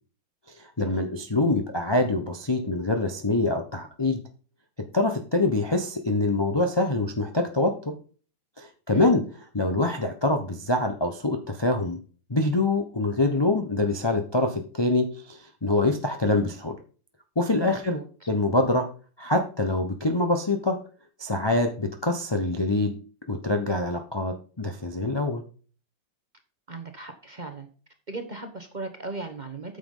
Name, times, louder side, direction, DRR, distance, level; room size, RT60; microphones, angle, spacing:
voice 1, 0.8-4.2 4.9-7.8 8.6-9.3 9.5-12.0 12.3-16.8 17.4-18.0 18.3-18.9 19.2-20.8 21.2-22.9 23.3-25.4, left 2 dB, 25° left, 5 dB, 0.6 m, -25 dB
voice 2, 17.6-18.3 26.7-27.7 28.1-29.8, right 3 dB, 30° right, 5 dB, 1.0 m, -38 dB
9.1 x 6.9 x 3.8 m, 0.39 s
omnidirectional pair, 2.1 m